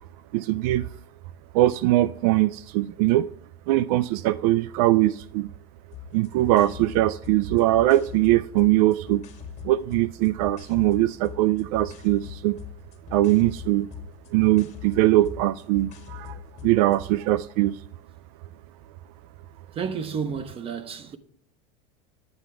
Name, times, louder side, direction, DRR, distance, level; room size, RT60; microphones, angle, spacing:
voice 1, 0.3-0.9 1.5-3.3 3.7-5.5 6.1-9.2 9.6-12.6 13.1-13.9 14.3-17.8, right 16 dB, 75° right, 0.4 m, -21 dB
sound 1, 5.9-17.0, left 9 dB, 35° left, 1.6 m, -42 dB
voice 2, 19.7-21.2, right 6 dB, 30° right, 1.0 m, -31 dB
10.5 x 7.8 x 3.4 m
supercardioid pair, 135°, 19 cm